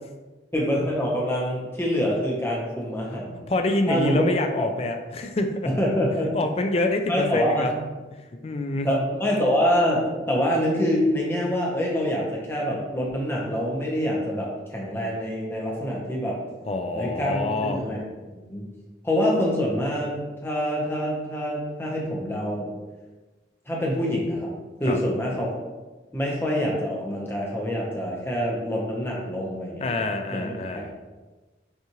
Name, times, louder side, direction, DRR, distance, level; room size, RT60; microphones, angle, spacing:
voice 1, 0.5-3.4 3.9-4.3 4.6-4.7 5.6-6.3 7.1-7.7 8.8-16.4 16.9-18.0 18.5-18.7 19.0-22.7 23.7-24.5 24.8-25.5 26.1-29.9 30.3-30.9, equal, 10° left, -3 dB, 0.7 m, -25 dB
voice 2, 3.5-5.7 6.3-7.7 8.4-8.9 16.7-17.8 24.8-25.0 29.8-30.9, left 2 dB, 35° left, 6 dB, 0.3 m, -26 dB
5.5 x 2.4 x 2.9 m, 1.2 s
head